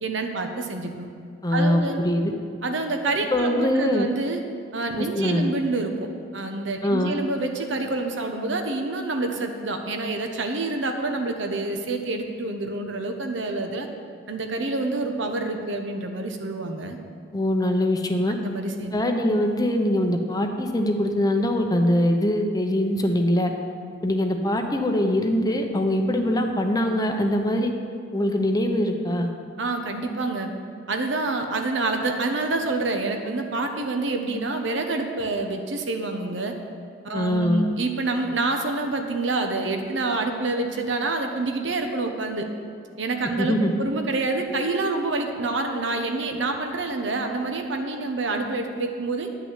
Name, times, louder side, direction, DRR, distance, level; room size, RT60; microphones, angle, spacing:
voice 1, 0.0-1.1 1.5-2.0 2.6-4.4 4.7-13.9 14.3-17.0 18.4-19.0 29.6-30.5 30.9-36.5 37.0-42.5 43.0-49.3, right 2 dB, 65° right, 4 dB, 1.1 m, -27 dB
voice 2, 1.4-2.3 3.3-4.1 5.0-5.5 6.8-7.1 17.3-18.4 18.9-23.5 24.0-27.7 28.1-29.3 37.1-37.6 43.2-43.8, left 1 dB, 20° left, 4 dB, 0.8 m, -23 dB
10.0 x 6.2 x 8.1 m, 2.3 s
head